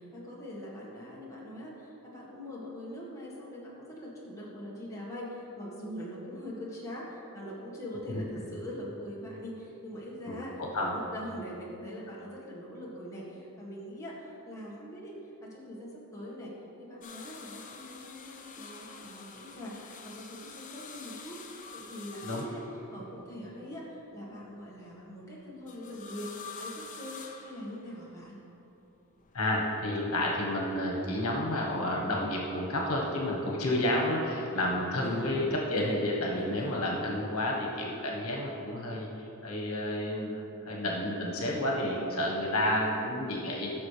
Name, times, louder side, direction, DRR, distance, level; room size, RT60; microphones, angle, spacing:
voice 1, 0.0-28.4 35.0-35.6 35.8-36.0 36.3-37.0, equal, 15° left, -6 dB, 1.6 m, -43 dB
voice 2, 10.3-10.9 22.2-22.4 29.3-43.7, left 1 dB, 75° left, -2 dB, 1.4 m, -30 dB
sound 1, 17.0-23.3 25.7-28.2 29.2-30.0 31.4-31.5, left 5 dB, 35° left, 0.6 m, -47 dB
13.5 x 6.1 x 3.4 m, 2.8 s
head